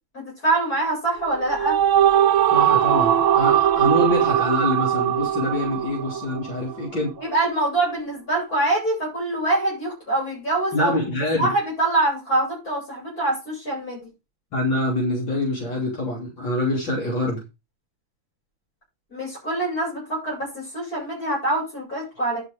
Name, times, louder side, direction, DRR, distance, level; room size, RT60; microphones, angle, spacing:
voice 1, 0.1-1.8 7.2-11.0 11.4-14.1 19.1-22.5, right 2 dB, 40° left, 8.7 m, -24 dB
sound 1, 1.2-6.7, right 10 dB, 70° right, 1.5 m, -20 dB
voice 2, 2.5-7.1 10.7-11.5 14.5-17.4, left 1 dB, 60° left, 3.8 m, -25 dB
10.5 x 6.6 x 5.0 m
omnidirectional pair, 2.4 m